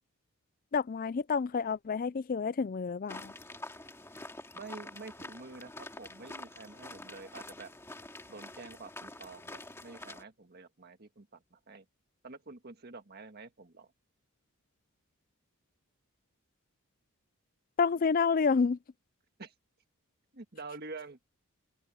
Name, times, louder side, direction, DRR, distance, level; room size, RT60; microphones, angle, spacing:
voice 1, 0.7-3.3 17.8-18.8, left 5 dB, 40° left, 0.4 m, -29 dB
sound 1, 3.1-10.2, left 2 dB, 10° left, 2.3 m, -47 dB
voice 2, 4.5-7.7 8.3-11.8 12.2-13.9 19.4-19.5 20.3-21.2, right 3 dB, 45° right, 1.6 m, -48 dB
head